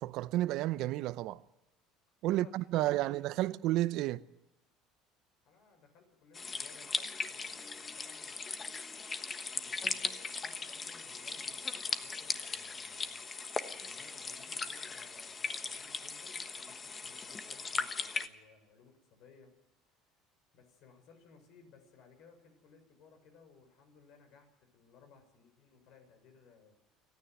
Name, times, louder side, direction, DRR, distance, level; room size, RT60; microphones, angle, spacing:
voice 1, 0.0-1.4 2.2-4.2, right 15 dB, 65° right, 0.7 m, -31 dB
voice 2, 2.3-3.4 5.4-6.9 7.2-8.8 9.5-13.2 13.7-19.5 20.5-26.8, left 5 dB, 65° left, 6.5 m, -61 dB
sound 1, 6.3-18.3, left 4 dB, 25° left, 1.3 m, -38 dB
29.0 x 9.8 x 9.3 m
supercardioid pair, 110°, 0 cm